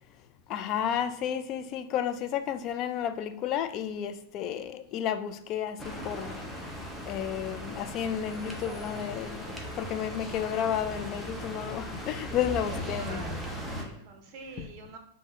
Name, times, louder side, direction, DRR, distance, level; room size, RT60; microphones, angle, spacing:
voice 1, 0.5-6.4 7.1-13.2 14.6-14.7, left 9 dB, 40° left, 0.3 m, -32 dB
sound 1, 5.8-13.8, equal, ahead, 0.7 m, -38 dB
voice 2, 12.4-15.0, right 4 dB, 45° right, 0.8 m, -47 dB
3.7 x 2.6 x 4.1 m
hypercardioid pair, 120°, 0 cm